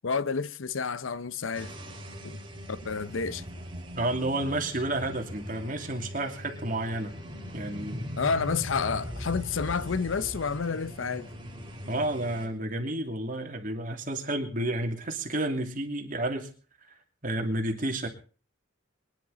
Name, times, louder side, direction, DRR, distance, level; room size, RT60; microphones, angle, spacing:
voice 1, 0.0-1.7 2.2-2.4 2.7-3.4 8.2-11.3, left 5 dB, 75° left, 0.7 m, -30 dB
sound 1, 1.5-12.5, equal, 25° right, 3.6 m, -40 dB
voice 2, 3.9-7.2 7.5-8.1 11.9-16.5 17.2-18.1, right 1 dB, 40° right, 2.7 m, -31 dB
23.5 x 11.0 x 4.1 m
head